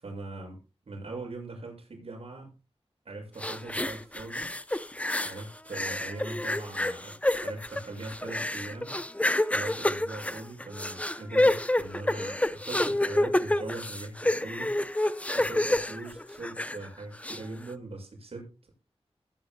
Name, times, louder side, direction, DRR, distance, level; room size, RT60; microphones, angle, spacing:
voice 1, 0.0-0.6 0.9-2.5 3.1-4.5 5.2-9.0 9.5-14.8 15.3-18.7, right 2 dB, 70° right, 1 dB, 7.1 m, -41 dB
sound 1, 3.4-5.4 5.7-16.9 17.2-17.4, left 1 dB, 15° left, 0.7 m, -28 dB
21.0 x 9.8 x 2.3 m, 0.30 s
wide cardioid pair, 95°, 10 cm